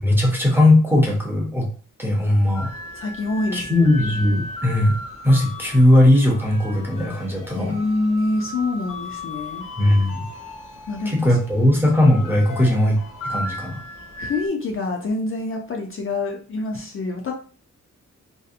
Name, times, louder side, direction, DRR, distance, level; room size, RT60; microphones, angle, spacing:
voice 1, 0.0-1.7 2.0-2.7 3.5-5.0 5.2-7.8 9.8-10.2 11.1-13.0 13.2-13.8, left 1 dB, 5° right, -2 dB, 0.5 m, -18 dB
sound 1, 2.5-14.5, left 2 dB, 85° left, 0.8 m, -36 dB
voice 2, 2.9-3.9 7.6-9.6 10.9-11.4 14.2-17.3, left 2 dB, 45° left, 1 dB, 0.4 m, -26 dB
2.6 x 2.0 x 2.4 m, 0.40 s
wide cardioid pair, 170°, 31 cm